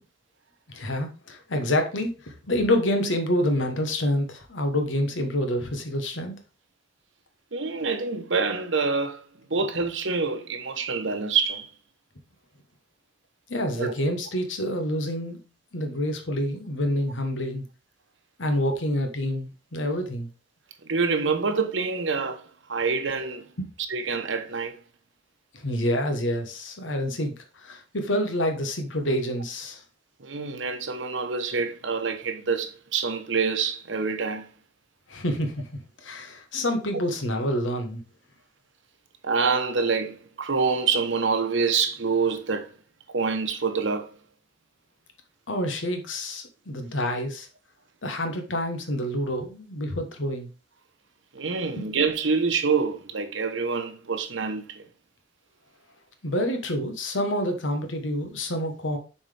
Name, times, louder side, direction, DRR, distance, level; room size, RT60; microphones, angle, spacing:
voice 1, 0.7-6.4 13.5-15.4 15.7-17.6 18.4-20.3 25.5-29.8 35.1-35.7 36.0-38.0 45.5-47.5 48.0-50.5 56.2-59.0, left 1 dB, 80° left, 1.3 m, -27 dB
voice 2, 7.5-11.7 13.8-13.9 20.8-22.4 22.7-23.5 23.9-24.7 30.2-34.5 39.2-42.7 43.1-44.1 51.3-54.8, right 5 dB, 75° right, 1.0 m, -26 dB
7.1 x 4.4 x 3.4 m
head